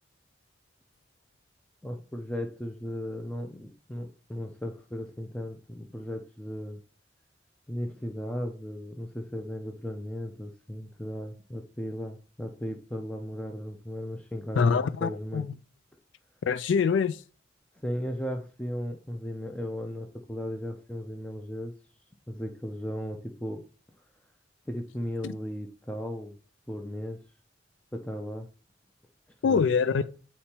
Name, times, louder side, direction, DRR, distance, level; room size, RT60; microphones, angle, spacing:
voice 1, 1.8-6.8 7.7-15.5 17.8-21.7 22.3-23.7 24.7-26.4 26.7-27.2 27.9-28.5 29.4-29.6, equal, 5° left, 0.5 m, -36 dB
voice 2, 14.6-15.5 16.5-17.2 25.2-25.4 29.4-30.0, left 5 dB, 90° left, 0.4 m, -24 dB
8.4 x 4.3 x 2.9 m
head